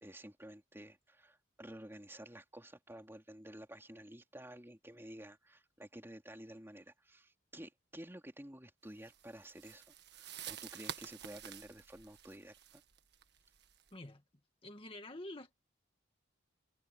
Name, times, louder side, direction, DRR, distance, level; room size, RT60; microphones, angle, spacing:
voice 1, 0.0-12.8, right 1 dB, 10° right, 3.3 m, -52 dB
sound 1, 9.0-13.9, right 9 dB, 55° right, 1.7 m, -49 dB
voice 2, 13.9-14.2 14.6-15.5, left 1 dB, 30° left, 1.9 m, -47 dB
head